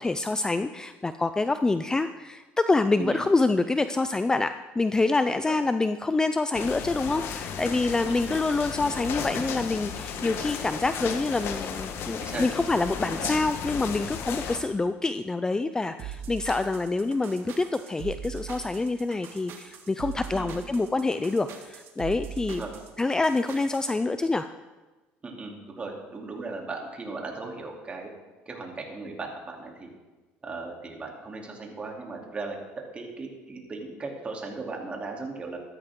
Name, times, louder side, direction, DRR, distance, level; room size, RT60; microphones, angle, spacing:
voice 1, 0.0-22.6 23.0-24.5, left 3 dB, 15° left, 11 dB, 0.5 m, -26 dB
sound 1, 6.5-14.6, left 7 dB, 60° left, 1.4 m, -34 dB
voice 2, 8.0-8.4 12.2-12.4 13.0-13.2 20.3-20.5 22.5-22.7 25.2-28.1 28.5-29.9 30.4-32.6 32.9-35.6, right 3 dB, 25° right, 0 dB, 3.1 m, -37 dB
sound 2, 16.0-23.9, right 9 dB, 60° right, 2.1 m, -41 dB
14.5 x 13.0 x 3.8 m, 1.2 s
cardioid pair, 110°, 5 cm